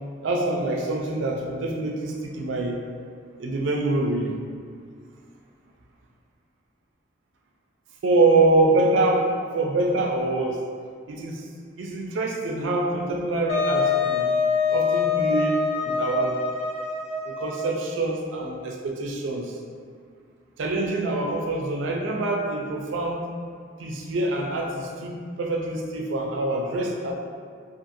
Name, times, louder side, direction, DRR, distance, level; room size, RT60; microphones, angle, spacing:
voice 1, 0.2-2.8 3.4-4.4 8.0-9.3 9.5-10.6 11.1-11.4 11.8-14.3 14.7-16.3 17.3-19.6 20.6-23.3 23.8-27.1, right 2 dB, 80° right, 1 dB, 0.4 m, -25 dB
Wind instrument woodwind instrument, 13.5-17.8, left 5 dB, 35° left, 0.3 m, -25 dB
2.5 x 2.5 x 2.6 m, 2.2 s
head